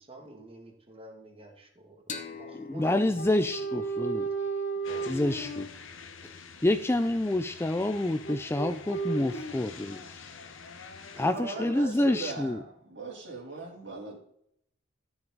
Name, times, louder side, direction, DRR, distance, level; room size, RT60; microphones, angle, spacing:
voice 1, 0.0-3.6 4.2-4.4 4.9-5.3 6.4-6.5 11.1-11.8, right 2 dB, 30° right, 3 dB, 1.9 m, -49 dB
sound 1, 2.1-5.5, left 5 dB, 40° left, 1.1 m, -45 dB
voice 2, 2.6-4.3 5.1-5.7 6.6-10.3 11.2-12.6, left 1 dB, 10° left, 8 dB, 0.4 m, -28 dB
sound 2, 2.8-5.7 8.2-9.5, right 4 dB, 70° left, 1.7 m, -33 dB
sound 3, 4.8-11.3, left 5 dB, 90° left, 1.2 m, -47 dB
voice 3, 11.3-14.2, right 3 dB, 65° right, -1 dB, 3.3 m, -39 dB
13.0 x 7.2 x 3.9 m, 0.70 s
head